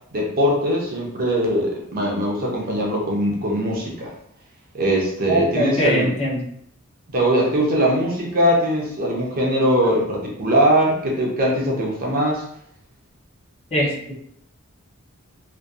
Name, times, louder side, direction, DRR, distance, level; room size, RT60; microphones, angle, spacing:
voice 1, 0.1-4.1 4.7-6.1 7.1-12.4, equal, 45° right, -2 dB, 0.6 m, -21 dB
voice 2, 5.3-6.4 9.4-9.6 13.7-14.0, equal, 30° left, -3 dB, 0.5 m, -21 dB
2.6 x 2.2 x 2.3 m, 0.68 s
head